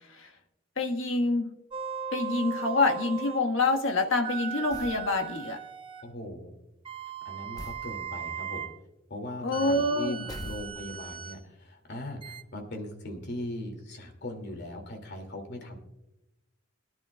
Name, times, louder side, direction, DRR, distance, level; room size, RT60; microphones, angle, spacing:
voice 1, 0.8-1.6 2.1-5.6 9.4-10.3, left 2 dB, 75° left, 3 dB, 1.5 m, -27 dB
sound 1, 1.7-3.5 4.2-6.1 6.8-8.8 9.5-11.4 12.2-12.4, right 7 dB, 25° right, 0.6 m, -38 dB
sound 2, 4.7-5.1 7.6-7.9 10.3-11.1, left 1 dB, 20° left, 0.9 m, -41 dB
voice 2, 6.0-6.5 7.2-8.7 9.1-15.8, left 1 dB, 60° left, 4 dB, 2.4 m, -39 dB
22.5 x 10.5 x 2.3 m, 0.95 s
head